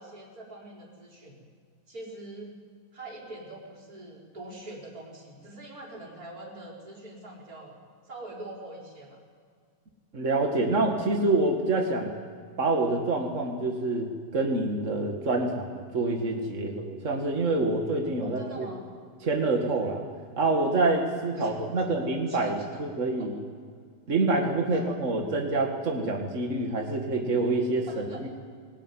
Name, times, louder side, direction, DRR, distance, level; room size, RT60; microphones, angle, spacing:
voice 1, 0.0-1.4 1.9-2.5 2.9-7.8 8.0-9.2 18.2-18.8 21.3-21.8 22.3-22.8 23.2-23.3 24.7-24.9 27.9-28.2, right 2 dB, 20° right, -2 dB, 5.1 m, -44 dB
voice 2, 10.1-12.1 12.6-18.7 19.2-20.0 20.4-23.3 24.1-28.3, right 2 dB, 65° right, 2 dB, 0.7 m, -27 dB
22.5 x 18.0 x 9.8 m, 2.1 s
omnidirectional pair, 4.9 m